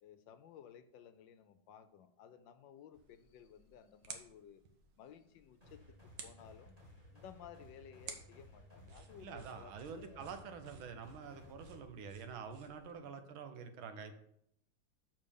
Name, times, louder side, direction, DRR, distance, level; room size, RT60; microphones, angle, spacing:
voice 1, 0.0-4.6 5.0-6.8 7.1-10.5 12.9-13.3, left 8 dB, 75° left, 11 dB, 1.2 m, -57 dB
sound 1, 2.9-12.9, right 5 dB, 65° right, 1.6 m, -56 dB
sound 2, 5.6-11.8, left 1 dB, 20° right, 2.6 m, -58 dB
voice 2, 9.2-14.2, right 6 dB, 85° right, 8 dB, 1.7 m, -47 dB
6.7 x 5.7 x 5.3 m, 0.72 s
omnidirectional pair, 2.2 m